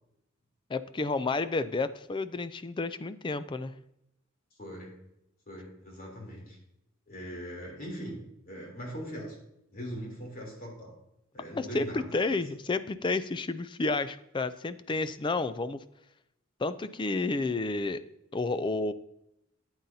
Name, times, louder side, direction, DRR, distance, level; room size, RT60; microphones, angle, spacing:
voice 1, 0.7-3.7 11.5-15.8 16.6-18.0 18.3-18.9, left 3 dB, 25° left, 13 dB, 0.4 m, -31 dB
voice 2, 4.6-4.9 5.5-6.6 7.1-9.3 9.7-10.9 11.3-12.3, equal, 45° left, -1 dB, 3.2 m, -41 dB
11.5 x 8.9 x 2.7 m, 0.82 s
head